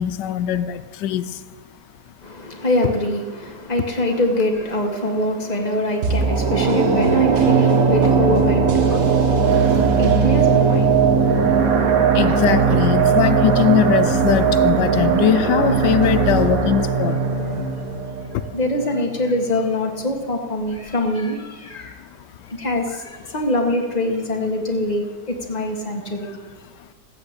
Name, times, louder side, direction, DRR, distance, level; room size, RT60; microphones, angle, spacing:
voice 1, 0.0-1.3 12.1-17.2, left 10 dB, 90° left, 1.2 m, -20 dB
voice 2, 2.2-12.2 17.5-17.8 18.5-22.0 22.5-26.4, left 1 dB, 25° left, 1.8 m, -24 dB
sound 1, 6.0-19.1 19.4-19.5, right 5 dB, 60° right, 1.6 m, -18 dB
15.5 x 7.9 x 8.2 m
omnidirectional pair, 1.8 m